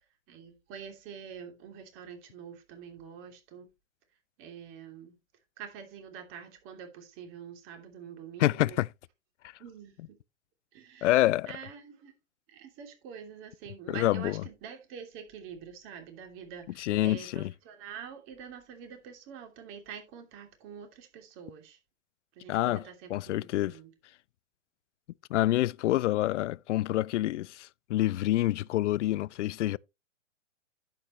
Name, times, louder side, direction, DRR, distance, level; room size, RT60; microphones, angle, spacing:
voice 1, 0.3-3.7 4.4-5.2 5.6-8.8 9.6-10.2 10.7-11.2 11.5-12.1 12.5-21.8 22.3-23.9, right 7 dB, 35° right, 3.0 m, -46 dB
voice 2, 8.4-8.9 11.0-11.5 13.9-14.4 16.8-17.5 22.5-22.8 23.1-23.8 25.3-29.8, left 15 dB, 70° left, 0.5 m, -27 dB
10.5 x 7.9 x 3.1 m
hypercardioid pair, 135°, 38 cm